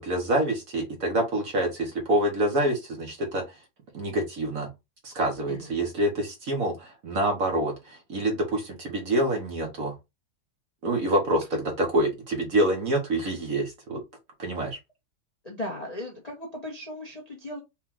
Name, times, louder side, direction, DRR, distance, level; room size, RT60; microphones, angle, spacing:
voice 1, 0.0-3.4 3.9-4.7 5.0-10.0 10.8-14.0 14.4-14.8, right 1 dB, 50° right, 1.3 m, -26 dB
voice 2, 15.4-17.6, left 1 dB, 30° left, 0.7 m, -37 dB
4.5 x 2.4 x 3.6 m
omnidirectional pair, 2.2 m